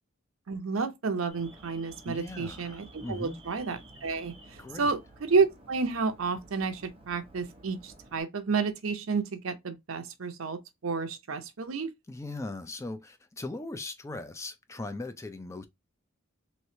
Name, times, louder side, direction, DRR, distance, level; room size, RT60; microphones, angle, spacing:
voice 1, 0.5-11.9, right 4 dB, 70° right, 0.6 m, -31 dB
Alarm, 1.3-8.2, right 1 dB, 25° right, 0.8 m, -52 dB
voice 2, 2.0-3.4 4.6-5.0 12.1-15.6, left 2 dB, 15° left, 0.3 m, -39 dB
3.1 x 3.1 x 2.7 m
head